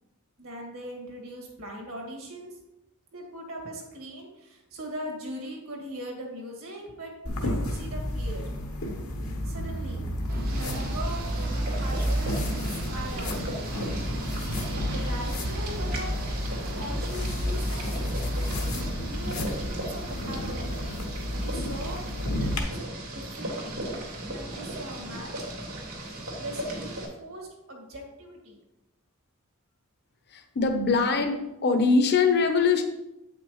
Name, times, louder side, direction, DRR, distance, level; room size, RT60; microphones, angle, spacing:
voice 1, 0.4-2.6 3.1-7.1 7.4-8.4 9.4-10.0 10.6-12.3 12.9-13.7 14.9-16.1 16.7-18.2 19.0-20.8 21.4-22.0 22.4-23.9 24.3-25.4 26.4-28.6, right 1 dB, 70° right, 0 dB, 2.1 m, -40 dB
sound 1, 7.3-22.6, left 1 dB, 75° left, 1.1 m, -32 dB
sound 2, 10.3-18.9, right 1 dB, 45° right, 0.7 m, -34 dB
Boiling, 10.5-27.1, right 1 dB, 90° right, 2.6 m, -37 dB
voice 2, 30.3-32.8, left 4 dB, 50° left, 5 dB, 0.8 m, -23 dB
8.3 x 6.0 x 3.1 m, 0.94 s
head